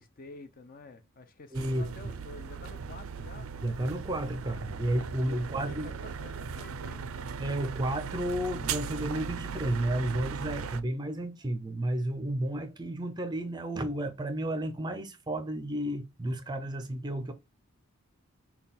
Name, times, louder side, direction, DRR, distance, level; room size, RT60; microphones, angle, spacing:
voice 1, 0.0-3.5 5.5-7.0, left 3 dB, 40° left, 0.6 m, -50 dB
voice 2, 1.5-1.9 3.6-5.9 7.4-17.3, right 1 dB, 20° right, 0.5 m, -32 dB
sound 1, 1.5-10.8, right 6 dB, 80° right, 0.4 m, -38 dB
5.6 x 2.3 x 4.1 m
head